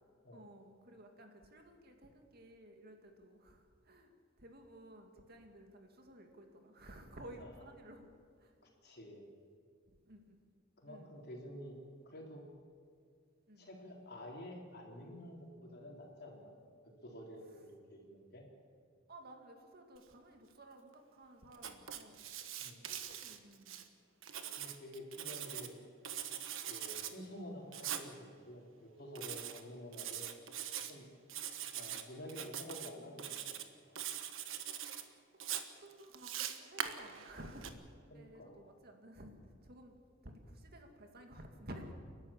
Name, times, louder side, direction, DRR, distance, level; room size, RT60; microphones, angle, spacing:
voice 1, 0.3-4.1 4.4-8.1 8.4-8.5 10.1-10.4 10.9-11.2 13.5-13.7 19.1-22.2 22.8-23.9 24.5-24.6 34.5-34.6 35.3-37.7 38.1-41.9, right 1 dB, 50° right, 4 dB, 2.3 m, -54 dB
voice 2, 8.6-9.3 10.8-11.8 12.1-12.5 13.6-16.5 17.0-18.5 22.6-22.8 24.6-25.8 26.2-26.3 26.6-30.3 30.9-31.1 31.7-33.6 33.8-33.9 38.1-38.6, left 1 dB, 50° left, 0 dB, 3.9 m, -50 dB
Writing, 21.5-23.8 24.2-25.7 26.0-27.1 27.7-28.1 29.2-29.6 29.9-30.9 31.3-32.0 32.3-32.9 33.2-33.7 34.0-35.0 35.4-37.7, right 9 dB, 70° right, 1.4 m, -42 dB
29.5 x 12.0 x 7.4 m, 2.2 s
head